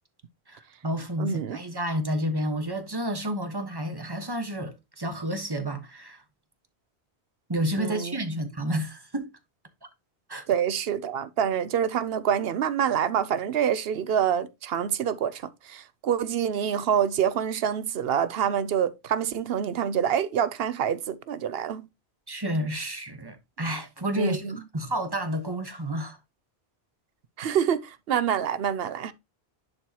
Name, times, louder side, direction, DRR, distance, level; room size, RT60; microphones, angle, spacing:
voice 1, 0.5-6.2 7.5-9.3 10.3-10.5 22.3-26.2, right 1 dB, 20° right, 1.2 m, -30 dB
voice 2, 1.2-1.6 7.8-8.1 10.5-15.4 15.7-21.9 24.2-24.6 27.4-29.1, right 8 dB, 70° right, 0.8 m, -26 dB
11.0 x 4.6 x 2.9 m
omnidirectional pair, 1.1 m